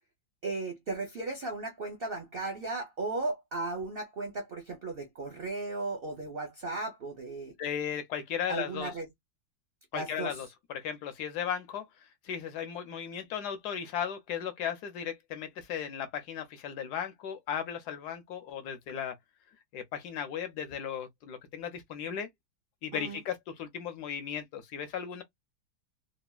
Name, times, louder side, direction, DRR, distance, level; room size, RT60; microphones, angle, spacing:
voice 1, 0.4-7.5 8.5-9.1 9.9-10.4 22.9-23.2, right 3 dB, 60° right, 0.6 m, -36 dB
voice 2, 7.6-8.9 9.9-19.1 19.7-22.3 22.8-25.2, left 8 dB, 65° left, 1.1 m, -36 dB
3.4 x 2.1 x 2.3 m
omnidirectional pair, 2.1 m